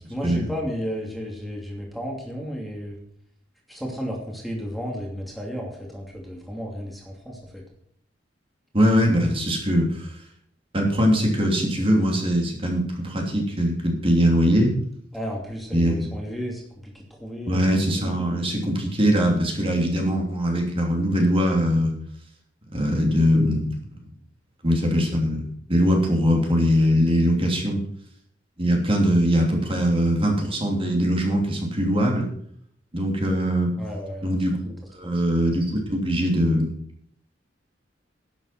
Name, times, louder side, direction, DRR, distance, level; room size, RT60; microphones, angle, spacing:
voice 1, 0.1-3.0 3.7-7.6 15.1-16.6 17.1-17.7 33.8-34.4 35.0-35.1, equal, ahead, -1 dB, 2.7 m, -33 dB
voice 2, 8.7-10.1 10.7-14.7 15.7-16.0 17.5-22.0 22.7-23.8 24.6-25.4 25.7-27.8 28.6-32.2 32.9-33.7 34.2-34.6 34.9-36.7, equal, 30° right, 1 dB, 3.1 m, -21 dB
11.5 x 9.3 x 5.9 m, 0.65 s
head